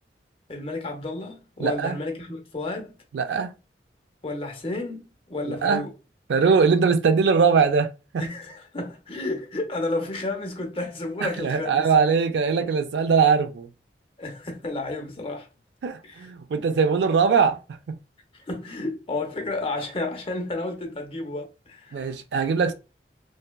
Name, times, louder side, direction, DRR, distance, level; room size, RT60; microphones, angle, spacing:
voice 1, 0.5-2.9 4.2-5.9 8.2-11.8 14.2-15.5 16.0-16.3 18.3-21.9, left 2 dB, 30° left, 0.6 m, -31 dB
voice 2, 1.6-2.0 3.1-3.5 5.4-5.9 6.3-7.9 8.1-8.2 11.2-13.7 15.8-17.6 21.9-22.7, right 5 dB, 80° right, 0.4 m, -21 dB
2.7 x 2.1 x 2.2 m
head